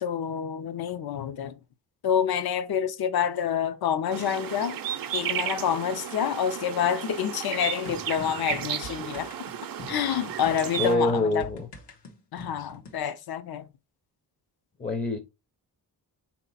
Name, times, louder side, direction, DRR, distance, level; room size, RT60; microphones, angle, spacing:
voice 1, 0.0-1.5 2.0-4.8 5.1-9.3 9.9-11.5 12.3-13.7, left 8 dB, 65° left, 0.6 m, -28 dB
sound 1, 4.1-11.0, right 10 dB, 60° right, 0.6 m, -34 dB
sound 2, 7.9-13.0, left 3 dB, 85° left, 1.2 m, -44 dB
voice 2, 10.8-11.7 14.8-15.2, left 2 dB, 20° left, 0.6 m, -25 dB
4.0 x 2.9 x 3.9 m
cardioid pair, 105°, 40 cm